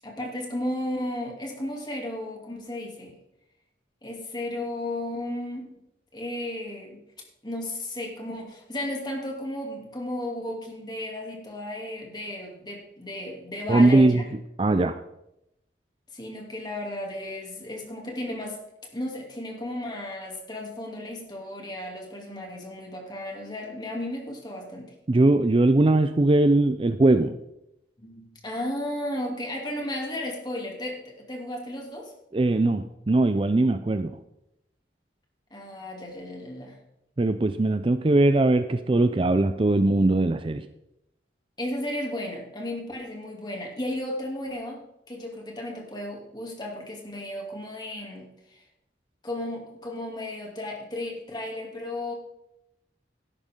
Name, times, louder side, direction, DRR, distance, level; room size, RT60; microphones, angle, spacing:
voice 1, 0.0-3.1 4.0-5.7 6.1-7.0 7.4-14.2 16.1-18.6 18.9-24.9 28.0-32.1 35.5-36.8 41.6-44.8 45.1-48.6 49.2-52.1, left 1 dB, 25° left, 0 dB, 2.7 m, -34 dB
voice 2, 13.7-15.0 25.1-27.4 32.3-34.2 37.2-40.7, right 2 dB, 30° right, 11 dB, 0.4 m, -21 dB
13.0 x 11.5 x 3.7 m, 0.84 s
head